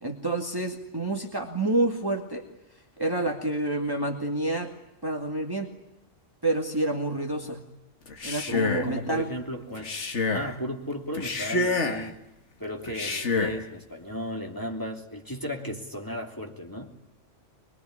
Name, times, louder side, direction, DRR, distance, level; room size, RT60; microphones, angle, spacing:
voice 1, 0.0-2.4 3.0-4.7 5.0-5.7 6.4-7.6 8.2-9.3, right 2 dB, 20° right, 3 dB, 2.3 m, -28 dB
Male speech man speaking, 8.1-9.0 9.8-10.5 11.1-12.1 12.9-13.6, left 3 dB, 65° left, 2.1 m, -28 dB
voice 2, 8.5-9.9 10.3-12.2 12.6-16.9, equal, 15° left, 1 dB, 3.1 m, -35 dB
24.5 x 22.5 x 9.8 m, 0.85 s
omnidirectional pair, 1.3 m